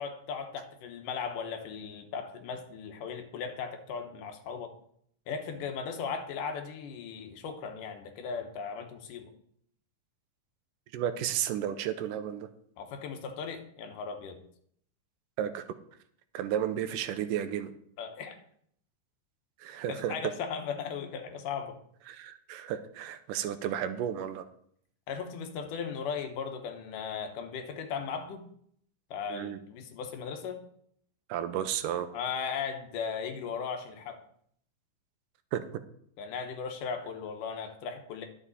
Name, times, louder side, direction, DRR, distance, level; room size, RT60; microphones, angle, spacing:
voice 1, 0.0-4.7 5.3-9.3 12.8-14.4 18.0-18.4 19.9-21.8 25.1-28.4 29.1-30.6 32.1-34.2 36.2-38.3, left 6 dB, 75° left, 5 dB, 2.6 m, -37 dB
voice 2, 10.9-12.5 15.4-15.6 16.3-17.7 19.6-20.3 22.1-24.5 29.3-29.6 31.3-32.1 35.5-35.6, right 10 dB, 80° right, 10 dB, 2.2 m, -33 dB
11.5 x 7.2 x 4.1 m, 0.66 s
omnidirectional pair, 3.9 m